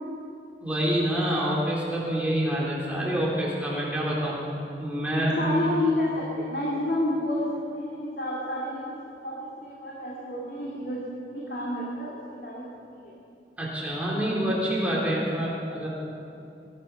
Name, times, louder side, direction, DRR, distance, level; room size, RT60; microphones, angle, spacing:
voice 1, 0.6-4.3 4.8-5.7 13.6-15.9, right 1 dB, 10° right, -5 dB, 3.5 m, -27 dB
voice 2, 5.4-9.0 9.2-11.1 11.3-13.1, left 1 dB, 60° left, -4 dB, 2.3 m, -30 dB
20.5 x 12.0 x 5.6 m, 2.6 s
head